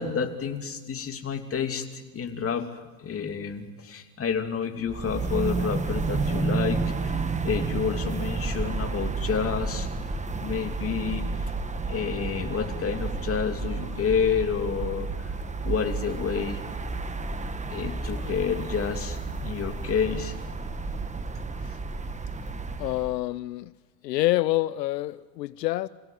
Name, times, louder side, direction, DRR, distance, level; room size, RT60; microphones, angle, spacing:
voice 1, 0.0-2.7 3.0-7.2 7.4-9.9 10.4-11.5 11.9-15.3 15.6-16.6 17.3-20.3 21.6-21.8, left 6 dB, 25° left, 2.9 m, -29 dB
sound 1, 4.9-23.2, right 3 dB, 15° right, 1.5 m, -31 dB
voice 2, 22.8-23.7 24.0-25.9, left 17 dB, 80° left, 0.7 m, -27 dB
27.5 x 17.0 x 9.4 m
hypercardioid pair, 95°, 49 cm